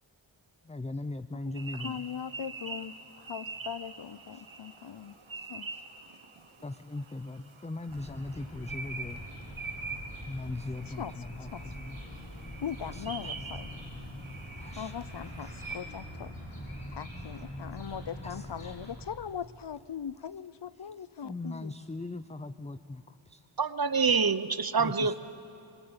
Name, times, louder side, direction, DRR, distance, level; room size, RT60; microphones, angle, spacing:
voice 1, 0.6-2.0 4.3-4.4 5.3-5.8 6.6-9.2 10.2-12.0 12.9-13.3 14.6-14.9 15.4-15.5 18.2-18.7 20.8-20.9 21.2-23.5 24.8-25.1, left 2 dB, 15° left, 0.5 m, -40 dB
voice 2, 1.5-5.2 5.5-5.7 10.9-11.1 11.5-11.6 12.6-13.7 14.8-16.3 16.9-21.7 25.0-25.1, left 8 dB, 60° left, 0.6 m, -40 dB
sound 1, 1.5-15.8, right 4 dB, 90° right, 1.5 m, -45 dB
sound 2, 7.9-18.9, equal, 90° left, 5.9 m, -44 dB
voice 3, 23.6-25.1, right 5 dB, 50° right, 0.8 m, -26 dB
26.0 x 21.5 x 8.8 m
wide cardioid pair, 45°, 47 cm